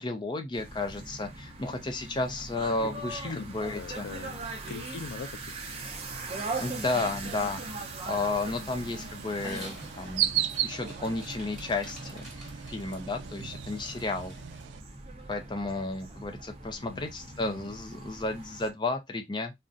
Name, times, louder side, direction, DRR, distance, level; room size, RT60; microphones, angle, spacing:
voice 1, 0.0-4.1 6.6-7.6 8.1-14.4 15.3-19.5, left 3 dB, 25° left, 0.5 m, -33 dB
sound 1, 0.5-18.7, right 3 dB, 35° right, 0.6 m, -41 dB
voice 2, 3.1-5.6 16.7-17.7, left 4 dB, 85° left, 0.4 m, -42 dB
sound 2, 6.4-14.8, right 11 dB, 80° right, 0.3 m, -37 dB
Dog, 9.3-14.6, equal, ahead, 1.2 m, -48 dB
3.6 x 2.1 x 2.5 m
head